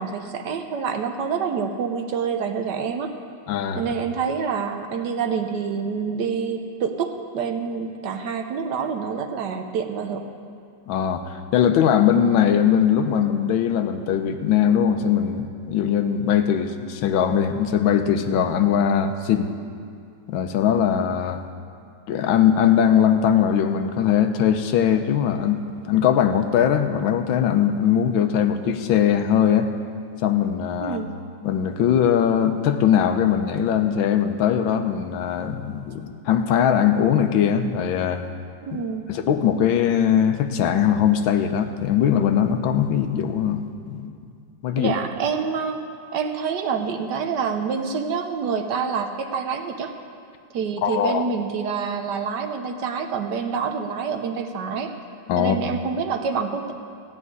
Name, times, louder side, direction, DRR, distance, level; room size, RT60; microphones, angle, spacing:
voice 1, 0.0-3.1 3.8-10.3 30.8-31.2 38.6-39.1 44.8-45.8 46.1-49.9 50.5-54.9 55.4-56.7, right 6 dB, 65° right, 5 dB, 1.3 m, -27 dB
voice 2, 3.5-3.9 10.9-19.5 20.3-21.4 22.1-29.7 30.2-31.0 31.4-38.3 38.7-38.8 39.1-44.1 44.6-44.9 50.8-51.2 55.3-55.6, left 9 dB, 80° left, 8 dB, 1.5 m, -20 dB
15.0 x 6.2 x 9.5 m, 2.3 s
omnidirectional pair, 2.1 m